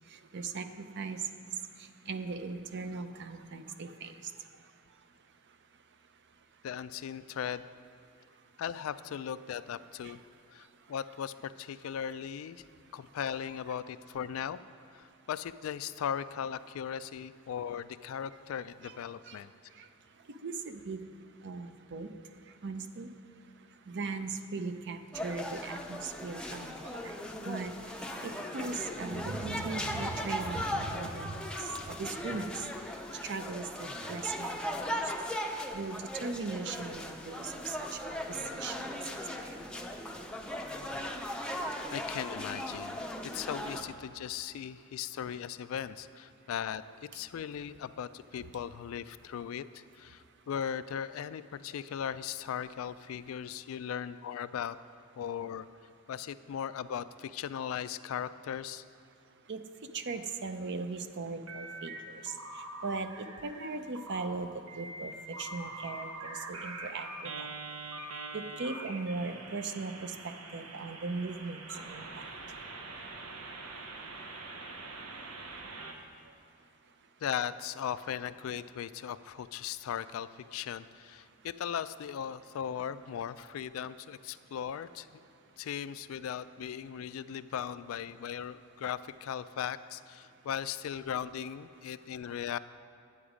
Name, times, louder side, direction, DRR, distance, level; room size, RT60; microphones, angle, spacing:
voice 1, 0.3-0.7 1.0-1.2 2.1-4.1 10.0-10.1 18.8-19.0 19.3-19.4 20.4-21.0 21.4-22.1 22.6-23.1 23.9-27.2 27.4-27.7 28.2-32.5 33.2-34.6 35.7-38.2 38.6-39.0 39.4-39.5 59.5-59.6 59.9-65.1 65.4-67.5 68.3-71.6 71.9-72.3, right 4 dB, 55° right, 9 dB, 0.6 m, -38 dB
voice 2, 6.6-7.6 8.6-10.2 10.5-12.6 12.9-14.6 14.9-19.5 41.9-43.0 43.3-54.8 55.2-55.7 56.1-58.8 77.2-85.1 85.6-92.6, left 8 dB, 70° left, 14 dB, 0.3 m, -38 dB
sound 1, 25.1-43.8, left 1 dB, 5° left, 0.5 m, -38 dB
sound 2, 61.5-62.0 62.3-63.7 63.9-64.3 64.7-75.9, right 2 dB, 85° right, 0.9 m, -44 dB
9.7 x 7.9 x 5.0 m, 2.6 s
head